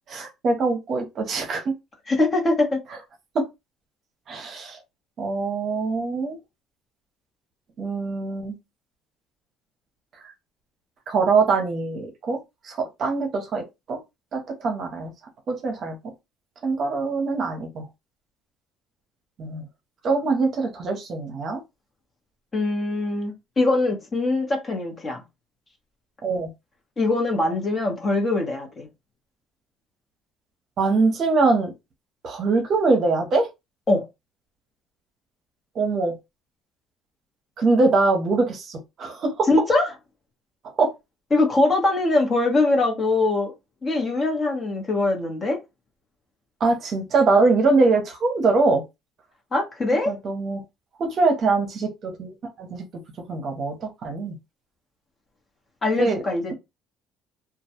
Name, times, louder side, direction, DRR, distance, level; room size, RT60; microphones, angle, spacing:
voice 1, 0.1-1.6 3.3-3.4 4.3-4.8 5.2-6.4 7.8-8.6 11.1-12.4 12.6-14.0 14.3-15.1 15.5-16.0 16.6-17.9 19.4-19.6 20.0-21.6 26.2-26.5 30.8-31.7 32.2-33.5 35.7-36.1 37.6-39.5 40.8-40.9 46.6-48.8 50.1-50.6 51.0-52.8 53.3-54.4 56.0-56.2, right 3 dB, 50° right, 0.7 m, -23 dB
voice 2, 2.1-2.8 22.5-25.2 27.0-28.9 33.9-34.0 39.5-39.9 41.3-43.5 43.8-45.6 49.5-50.1 55.8-56.5, left 2 dB, 30° left, 1.0 m, -22 dB
2.3 x 2.2 x 2.8 m
cardioid pair, 120°, 0 cm